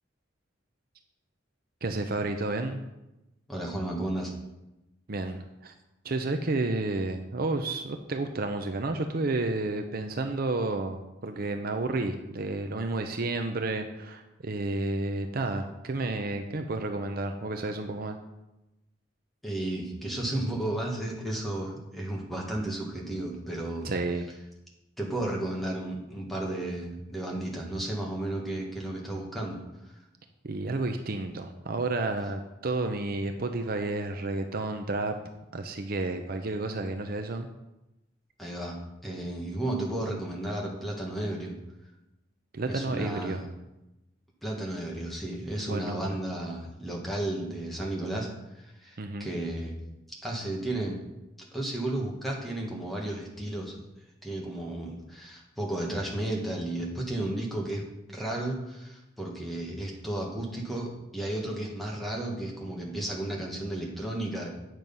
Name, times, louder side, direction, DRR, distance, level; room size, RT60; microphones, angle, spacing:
voice 1, 1.8-2.8 5.1-5.7 6.0-18.2 23.8-24.3 30.4-35.2 35.5-37.5 42.5-43.4 45.7-46.0 49.0-49.3, right 2 dB, 50° right, 6 dB, 0.7 m, -31 dB
voice 2, 3.5-4.3 19.4-23.9 25.0-29.9 38.4-38.8 39.0-41.5 42.7-43.5 44.4-48.3 48.5-49.8 50.2-51.0 51.5-53.7 54.2-57.8 58.1-64.5, right 1 dB, ahead, -2 dB, 1.7 m, -33 dB
9.1 x 6.3 x 5.4 m, 0.95 s
head